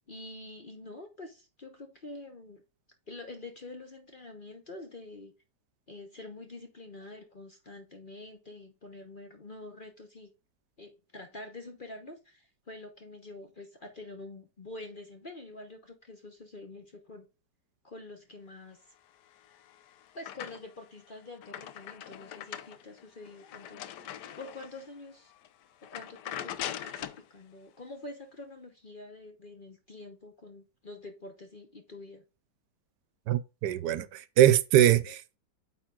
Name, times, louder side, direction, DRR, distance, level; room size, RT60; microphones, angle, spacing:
voice 1, 0.1-2.6 3.1-5.3 5.9-10.3 10.8-17.3 17.8-18.8 20.1-23.9 24.4-25.3 25.8-32.2 35.1-35.2, left 2 dB, 40° left, 0.9 m, -46 dB
sound 1, 19.3-20.9 21.2-24.9 25.3-25.5 25.8-27.3, left 10 dB, 75° left, 1.2 m, -41 dB
voice 2, 33.3-35.2, right 11 dB, 75° right, 1.2 m, -23 dB
8.9 x 3.8 x 3.8 m
omnidirectional pair, 1.9 m